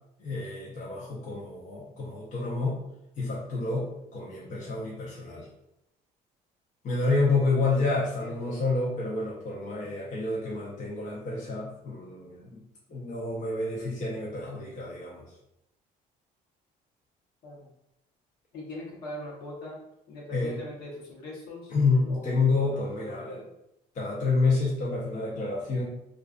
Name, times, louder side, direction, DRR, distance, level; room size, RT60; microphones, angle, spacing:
voice 1, 0.2-2.8 3.2-5.5 6.8-12.6 12.9-15.2 20.3-20.6 21.7-23.4 23.9-25.8, left 3 dB, 45° left, -5 dB, 0.7 m, -29 dB
voice 2, 8.2-8.5 9.8-9.9 17.4-17.7 18.5-19.8 20.1-21.7 22.1-22.4 22.6-23.4, left 1 dB, 70° left, -4 dB, 1.0 m, -41 dB
2.3 x 2.3 x 2.4 m, 0.83 s
cardioid pair, 110°, 17 cm